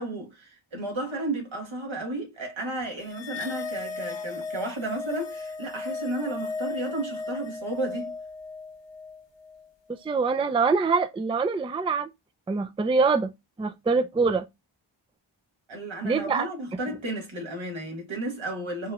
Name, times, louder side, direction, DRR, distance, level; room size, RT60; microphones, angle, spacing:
voice 1, 0.0-8.1 15.7-18.9, right 2 dB, 70° right, 1.8 m, -33 dB
sound 1, 3.1-9.7, left 4 dB, 60° left, 0.9 m, -36 dB
voice 2, 9.9-12.1 12.5-13.3 13.6-14.5 16.0-16.5, right 4 dB, 10° right, 0.3 m, -24 dB
4.7 x 2.9 x 2.3 m
cardioid pair, 45°, 49 cm